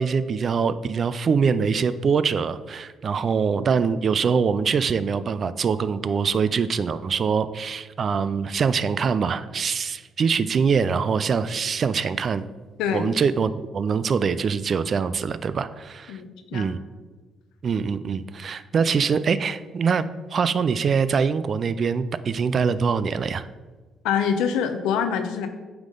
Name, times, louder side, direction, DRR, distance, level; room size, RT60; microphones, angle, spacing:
voice 1, 0.0-12.5 12.9-16.2 16.5-16.8 17.6-23.5, right 6 dB, 50° right, 14 dB, 0.3 m, -24 dB
voice 2, 16.1-16.7 24.0-25.5, left 7 dB, 90° left, 8 dB, 0.6 m, -25 dB
8.8 x 3.6 x 3.8 m, 1.3 s
cardioid pair, 80°, 0 cm